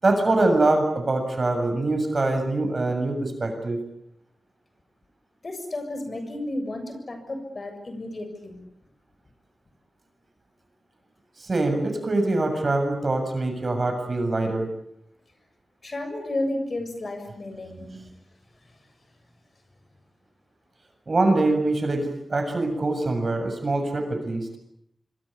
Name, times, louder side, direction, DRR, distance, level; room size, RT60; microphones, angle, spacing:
voice 1, 0.0-3.8 11.4-14.7 17.8-18.1 21.1-24.5, right 2 dB, 45° right, 6 dB, 7.5 m, -24 dB
voice 2, 5.4-8.6 15.8-17.9, left 1 dB, 45° left, 7 dB, 7.2 m, -32 dB
26.0 x 25.0 x 8.5 m, 0.73 s
wide cardioid pair, 105°, 0 cm